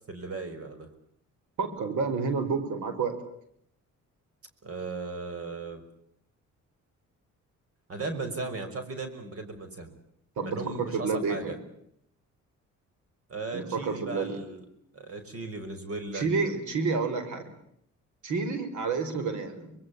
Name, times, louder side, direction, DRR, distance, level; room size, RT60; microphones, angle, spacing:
voice 1, 0.1-0.9 4.6-5.9 7.9-9.9 10.4-11.6 13.3-14.6 14.9-16.3, right 3 dB, 50° right, 8 dB, 5.9 m, -36 dB
voice 2, 1.6-3.2 10.4-11.6 13.5-14.4 16.1-17.5 18.2-19.7, right 4 dB, 75° right, 10 dB, 5.6 m, -29 dB
25.5 x 22.0 x 8.7 m, 0.72 s
cardioid pair, 90°, 30 cm